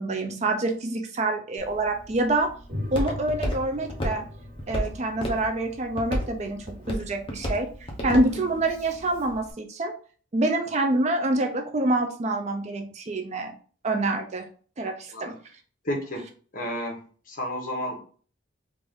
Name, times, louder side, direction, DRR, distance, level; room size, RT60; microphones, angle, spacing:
voice 1, 0.0-2.5 2.9-4.2 4.7-7.7 8.0-9.9 10.3-13.6 13.8-14.5 14.8-15.4, right 2 dB, 35° right, 5 dB, 0.4 m, -26 dB
Walk footsteps, 1.6-9.5, equal, 25° left, 0.8 m, -34 dB
sound 1, 2.7-7.4, left 1 dB, 50° right, 1.3 m, -40 dB
voice 2, 8.0-8.4 15.1-15.2 15.8-16.2 16.5-18.0, left 1 dB, 45° left, 0 dB, 1.1 m, -32 dB
3.5 x 2.5 x 3.5 m, 0.42 s
head